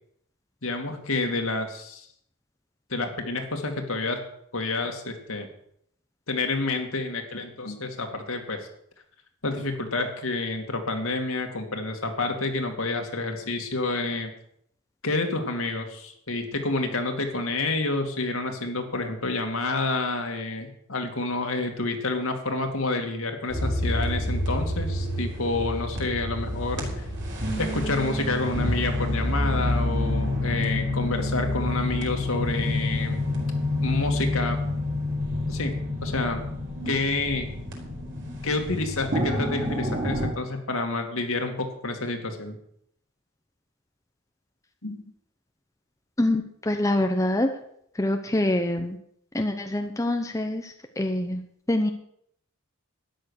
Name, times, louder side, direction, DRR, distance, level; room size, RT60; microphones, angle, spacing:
voice 1, 0.6-2.1 2.9-4.2 4.5-5.5 6.3-8.6 9.4-14.3 15.0-27.1 27.6-33.2 33.8-34.6 35.5-35.7 36.0-36.4 36.9-37.5 38.4-42.6 44.8-45.0, left 2 dB, 70° left, 4 dB, 2.6 m, -29 dB
sound 1, 23.5-40.3, left 1 dB, 55° right, 4.4 m, -28 dB
voice 2, 46.2-47.5 48.0-49.0 49.3-51.4 51.7-51.9, left 1 dB, 15° left, 5 dB, 0.9 m, -25 dB
13.0 x 10.5 x 6.6 m, 0.69 s
head